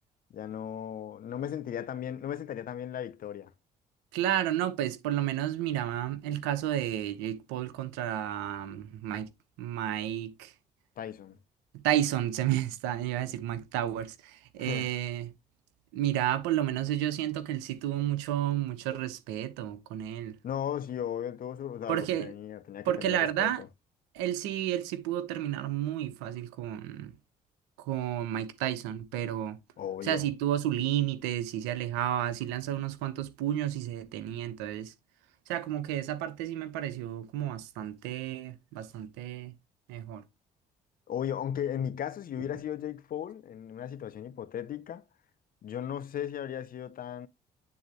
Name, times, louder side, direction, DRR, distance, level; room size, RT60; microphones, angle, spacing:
voice 1, 0.3-3.5 11.0-11.4 14.6-14.9 20.4-23.5 29.8-30.3 41.1-45.0 45.6-47.3, left 9 dB, 55° left, 0.7 m, -36 dB
voice 2, 4.1-9.3 9.6-10.5 11.7-15.3 15.9-20.4 21.9-22.3 22.8-23.6 24.1-27.1 27.8-29.6 30.0-34.9 35.5-39.5 39.9-40.2, right 12 dB, 90° right, 0.9 m, -31 dB
9.7 x 3.9 x 3.2 m
supercardioid pair, 60°, 17 cm